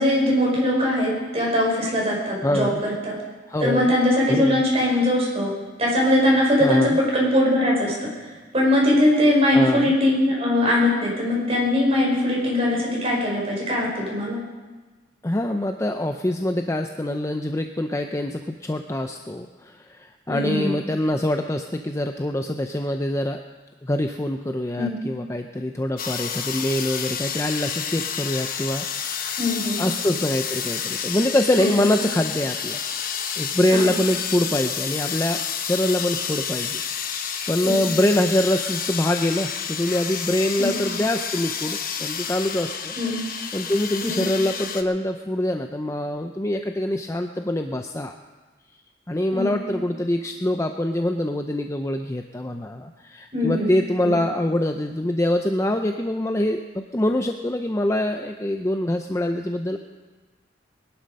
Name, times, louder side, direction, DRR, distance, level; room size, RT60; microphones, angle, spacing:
voice 1, 0.0-3.1 3.6-5.5 5.8-8.1 8.5-14.4 20.3-20.7 24.8-24.9 29.4-29.8 31.6-31.9 33.7-33.9 37.6-37.8 40.6-40.8 42.9-43.2 44.0-44.2 49.3-49.5 53.3-53.7 54.0-54.1, left 1 dB, 35° right, -3 dB, 5.1 m, -21 dB
voice 2, 2.4-2.8 3.5-3.9 4.3-4.6 6.6-7.0 9.5-9.9 15.2-23.4 23.8-29.2 29.8-32.8 33.4-42.9 43.5-48.2 49.1-59.8, left 1 dB, 15° left, 5 dB, 0.6 m, -24 dB
sound 1, 26.0-44.8, left 7 dB, 50° left, 1.0 m, -30 dB
20.5 x 11.5 x 5.3 m, 1.3 s
head